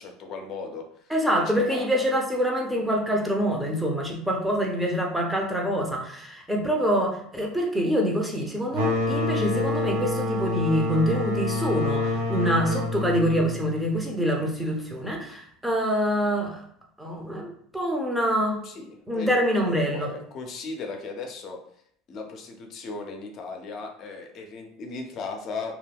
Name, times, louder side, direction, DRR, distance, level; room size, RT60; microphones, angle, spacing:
voice 1, 0.0-1.9 18.6-19.3 19.6-21.6 22.1-25.7, left 4 dB, 50° left, 3 dB, 0.6 m, -37 dB
voice 2, 1.1-16.6 17.0-18.6 19.1-20.1, equal, 5° right, -1 dB, 0.7 m, -25 dB
sound 1, 8.7-14.2, left 2 dB, 80° right, 0.6 m, -27 dB
2.4 x 2.1 x 3.4 m, 0.67 s
supercardioid pair, 100°, 0 cm